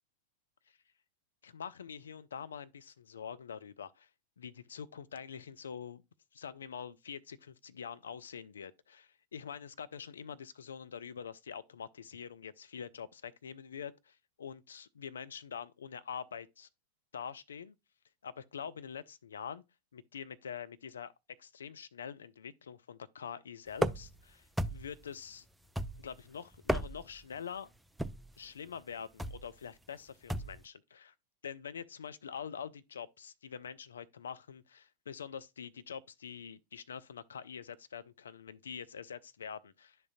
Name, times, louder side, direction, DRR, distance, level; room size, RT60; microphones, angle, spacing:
voice 1, 1.4-4.1 4.4-6.0 6.3-16.7 17.1-17.7 18.2-19.6 19.9-21.1 21.4-25.5 26.0-27.7 28.4-31.1 31.4-40.0, left 7 dB, 70° left, 0.4 m, -45 dB
sound 1, 23.8-24.2 24.6-25.0 25.8-26.2 26.5-27.2 28.0-28.3 29.2-29.5 30.3-30.6, right 1 dB, 5° right, 0.3 m, -34 dB
10.5 x 3.7 x 2.6 m
figure-of-eight pair, 90°, 0 cm